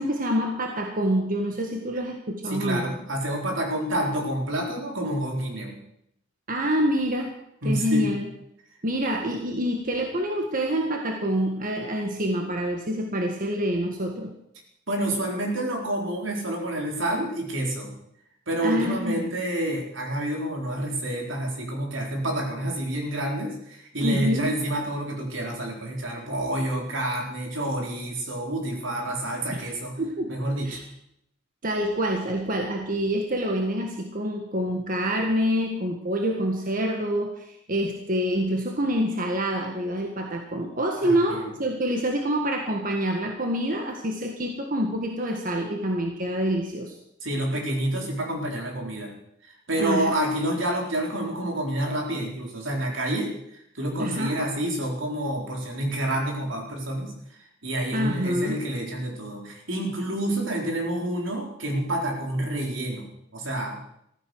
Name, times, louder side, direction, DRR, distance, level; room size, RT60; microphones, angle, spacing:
voice 1, 0.0-2.8 6.5-7.3 7.6-8.2 8.8-14.3 18.6-19.3 24.0-24.5 29.5-29.7 30.0-30.3 30.6-30.8 31.6-46.9 49.8-50.1 54.0-54.4 57.9-58.6, equal, 45° right, 2 dB, 1.7 m, -26 dB
voice 2, 2.5-5.8 7.6-8.2 14.9-17.9 18.5-30.0 30.3-30.8 41.0-41.5 47.2-49.1 49.7-57.1 57.6-63.8, right 1 dB, 80° right, 1 dB, 4.1 m, -28 dB
15.0 x 14.0 x 6.3 m, 0.77 s
head